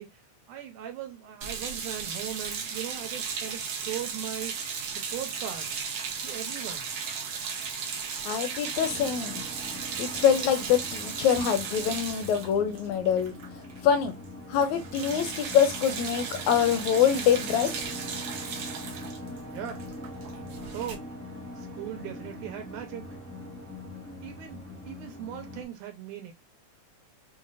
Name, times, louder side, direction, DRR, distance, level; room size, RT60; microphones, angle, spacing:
voice 1, 0.0-4.6 4.9-5.7 6.2-6.9 19.5-19.8 20.7-21.0 21.6-23.1 24.2-26.3, right 11 dB, 90° right, 2.3 m, -39 dB
sound 1, 1.4-13.8 14.1-14.3 14.5-21.0, right 6 dB, 70° right, 1.5 m, -36 dB
voice 2, 8.3-9.4 10.0-13.3 13.8-14.2 14.5-17.7, left 8 dB, 80° left, 1.8 m, -25 dB
sound 2, 8.8-25.6, left 1 dB, 5° left, 0.5 m, -42 dB
6.1 x 2.1 x 2.5 m
omnidirectional pair, 3.5 m